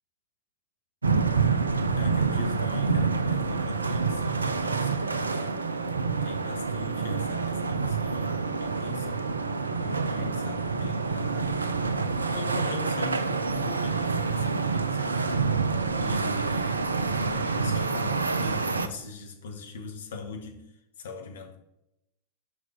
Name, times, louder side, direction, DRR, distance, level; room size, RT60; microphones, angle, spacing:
sound 1, 1.0-18.9, right 4 dB, 75° right, 0.6 m, -27 dB
voice 1, 2.0-5.6 6.2-9.3 9.8-11.6 12.1-15.5 16.0-20.7 21.0-21.6, left 3 dB, 60° left, 1.3 m, -41 dB
6.1 x 5.8 x 5.7 m
figure-of-eight pair, 90°, 0 cm